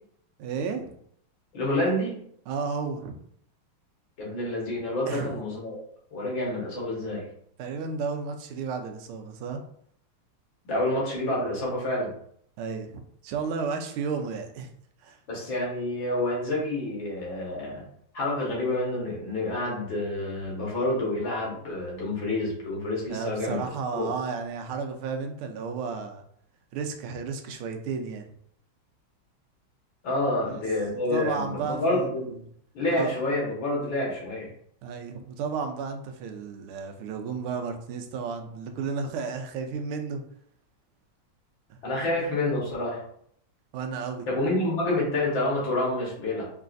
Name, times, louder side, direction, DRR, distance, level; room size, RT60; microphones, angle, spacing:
voice 1, 0.4-0.9 2.5-3.2 5.1-5.4 7.6-9.6 12.6-12.9 13.2-14.7 15.0-15.2 23.1-26.2 26.7-28.3 30.4-30.6 31.1-32.1 32.9-33.2 34.8-40.2 41.7-41.8 43.7-44.3, right 5 dB, 85° right, 5 dB, 1.5 m, -33 dB
voice 2, 1.5-2.2 4.2-5.8 6.1-7.3 10.7-12.1 15.3-17.8 18.1-23.7 23.9-24.1 30.0-32.3 32.7-34.5 41.8-43.0 44.3-46.5, left 1 dB, 65° left, -4 dB, 2.1 m, -28 dB
4.6 x 3.2 x 2.5 m, 0.66 s
omnidirectional pair, 2.3 m